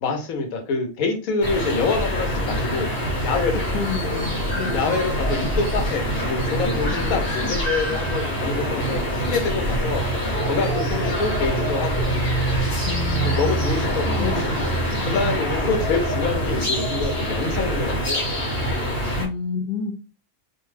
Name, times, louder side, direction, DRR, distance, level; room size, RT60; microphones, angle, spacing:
voice 1, 0.0-2.9 3.2-3.7 4.7-10.1 10.5-12.1 13.2-14.3 15.1-18.3, left 4 dB, 80° left, 5 dB, 1.1 m, -26 dB
sound 1, 1.4-19.3, right 1 dB, 45° left, 1.1 m, -24 dB
voice 2, 3.7-5.1 6.9-7.2 10.8-11.0 12.9-15.7 19.2-19.9, left 5 dB, 60° left, 4 dB, 0.6 m, -31 dB
2.6 x 2.2 x 3.2 m, 0.33 s
omnidirectional pair, 1.5 m